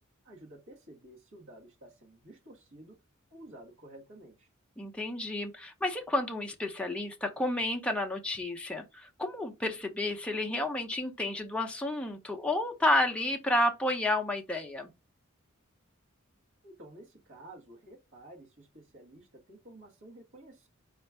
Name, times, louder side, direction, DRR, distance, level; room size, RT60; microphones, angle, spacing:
voice 1, 0.2-3.0 3.3-4.5 16.6-20.7, right 1 dB, 65° right, 1.6 m, -52 dB
voice 2, 4.8-14.9, left 1 dB, 5° left, 0.6 m, -31 dB
4.3 x 2.5 x 4.3 m
head